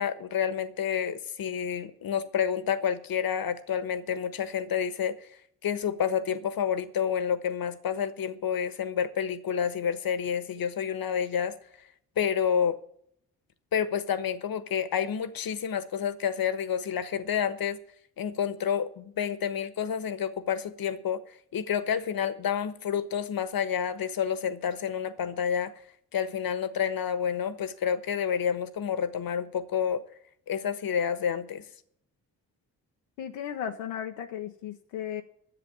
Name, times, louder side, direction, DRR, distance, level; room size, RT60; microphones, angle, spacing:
voice 1, 0.0-11.6 12.2-12.8 13.7-17.8 18.2-21.2 21.5-25.7 26.1-30.0 30.5-31.6, left 8 dB, 55° left, 1.3 m, -29 dB
voice 2, 33.2-35.2, left 9 dB, 85° left, 0.8 m, -35 dB
11.0 x 7.7 x 8.4 m
hypercardioid pair, 40°, 41 cm